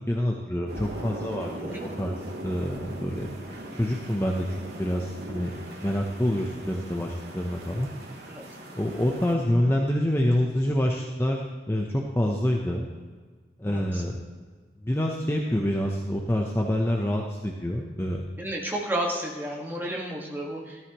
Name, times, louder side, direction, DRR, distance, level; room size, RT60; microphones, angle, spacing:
voice 1, 0.1-2.1 2.4-4.5 4.8-5.5 5.8-7.9 8.7-11.4 11.7-12.9 13.6-14.2 14.8-18.2, left 1 dB, 15° left, 0 dB, 0.8 m, -27 dB
sound 1, 0.7-9.3, right 1 dB, 70° right, 1.8 m, -40 dB
voice 2, 13.6-14.0 18.4-20.8, right 1 dB, 10° right, -2 dB, 1.8 m, -32 dB
14.0 x 13.5 x 3.1 m, 1.4 s
head